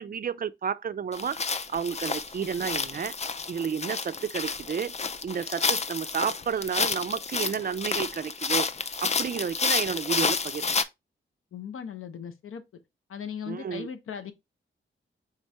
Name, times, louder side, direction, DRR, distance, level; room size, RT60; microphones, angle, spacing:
voice 1, 0.0-1.4 1.7-3.1 3.5-4.9 5.2-8.7 9.0-10.7 13.5-13.9, right 7 dB, 45° right, 0.4 m, -31 dB
sound 1, 1.1-10.8, left 4 dB, 30° left, 0.4 m, -30 dB
voice 2, 11.5-12.6 13.1-14.3, left 7 dB, 90° left, 0.7 m, -38 dB
4.2 x 3.7 x 3.3 m
cardioid pair, 70°, 21 cm